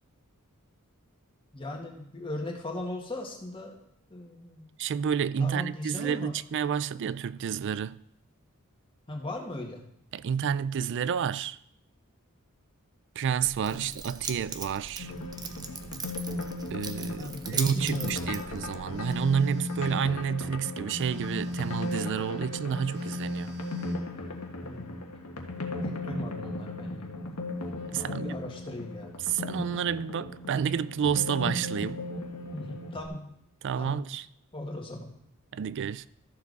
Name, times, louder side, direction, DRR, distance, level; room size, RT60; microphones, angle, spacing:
voice 1, 1.5-3.8 4.1-4.7 5.4-6.4 9.1-9.8 13.7-13.9 17.2-18.3 24.6-24.9 25.6-27.1 28.0-29.2 32.5-33.3 33.8-34.0 34.5-35.1, left 1 dB, 25° left, 1.8 m, -38 dB
voice 2, 4.8-8.0 10.1-11.6 13.2-15.1 16.7-23.5 27.9-28.4 29.2-32.1 33.6-34.3 35.5-36.1, right 7 dB, 55° right, 0.4 m, -30 dB
Keys jangling, 13.4-19.4, right 5 dB, 20° right, 0.7 m, -40 dB
sound 1, 15.0-33.1, left 2 dB, 80° left, 1.4 m, -37 dB
Telephone, 18.9-20.0 20.9-22.1 22.9-24.1, left 2 dB, 85° right, 3.5 m, -36 dB
13.5 x 6.9 x 4.0 m
head